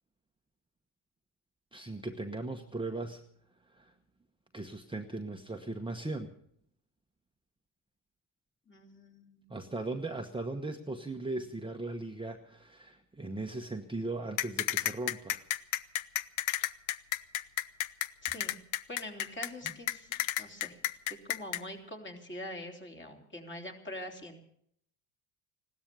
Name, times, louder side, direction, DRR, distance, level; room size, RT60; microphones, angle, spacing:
voice 1, 1.7-3.2 3.7-3.9 4.5-6.3 9.5-15.4, right 2 dB, 10° right, 4 dB, 1.1 m, -38 dB
voice 2, 8.7-9.6 18.2-18.6 18.9-20.8 21.1-24.4, left 1 dB, 25° left, 2 dB, 3.3 m, -44 dB
sound 1, 14.4-21.6, left 14 dB, 70° left, 0.8 m, -31 dB
16.5 x 12.5 x 7.0 m, 0.70 s
supercardioid pair, 80°, 48 cm